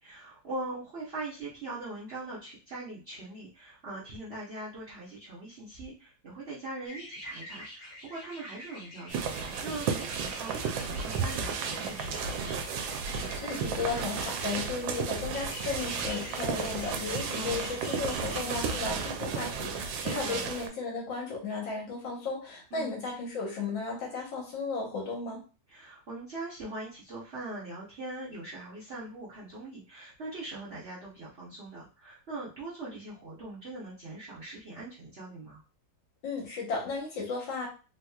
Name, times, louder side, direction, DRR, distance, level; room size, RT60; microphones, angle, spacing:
voice 1, 0.0-12.6 17.3-17.7 20.0-20.4 22.7-23.0 25.7-35.6, right 2 dB, 50° right, -8 dB, 0.8 m, -41 dB
sound 1, 6.9-14.8 15.3-18.8, left 2 dB, 50° left, 0.8 m, -47 dB
sound 2, 9.1-20.7, right 6 dB, 80° right, 1.3 m, -33 dB
voice 2, 13.2-25.4 36.2-37.7, left 4 dB, 80° left, -1 dB, 1.8 m, -35 dB
3.5 x 2.8 x 2.3 m, 0.33 s
omnidirectional pair, 2.0 m